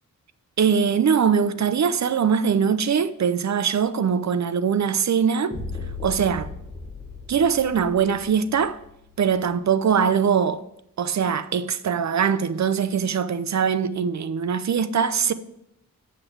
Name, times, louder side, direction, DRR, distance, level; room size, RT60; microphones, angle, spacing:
voice 1, 0.6-5.5 6.0-6.5 7.3-8.8 9.2-10.6 11.0-15.3, right 7 dB, 55° right, 0.6 m, -22 dB
sound 1, 5.5-9.5, left 3 dB, 15° left, 3.2 m, -37 dB
9.1 x 6.0 x 4.6 m
wide cardioid pair, 95°, 34 cm